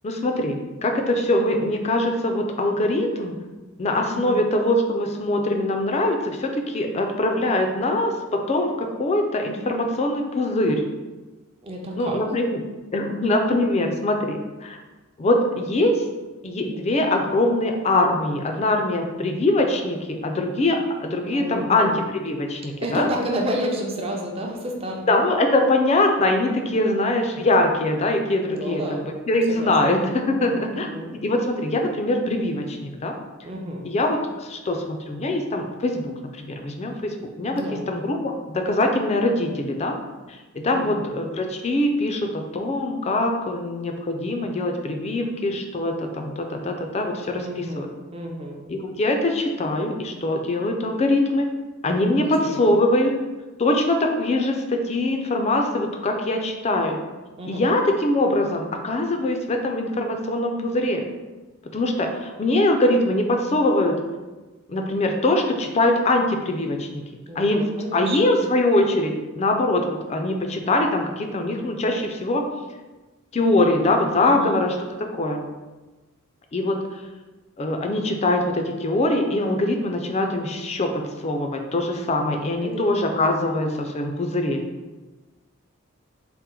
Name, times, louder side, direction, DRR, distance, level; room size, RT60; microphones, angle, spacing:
voice 1, 0.0-3.4 3.8-10.8 12.0-12.6 12.9-14.8 15.2-16.0 16.4-23.1 25.1-33.2 33.8-40.0 40.5-47.9 48.7-51.5 51.8-53.1 53.6-57.0 57.5-61.0 61.7-64.0 64.7-66.9 67.4-72.5 73.3-75.4 76.5-76.8 77.6-84.6, left 1 dB, 30° left, 4 dB, 0.4 m, -23 dB
voice 2, 11.6-12.2 21.3-22.0 22.8-25.0 26.7-27.0 28.5-29.1 29.5-29.7 30.8-31.1 33.4-33.8 37.5-37.9 40.7-41.1 47.3-48.6 52.1-52.8 57.4-57.7 67.3-68.2 74.2-74.6 82.2-82.8, equal, 30° right, 0 dB, 0.5 m, -31 dB
4.2 x 2.0 x 3.7 m, 1.2 s
head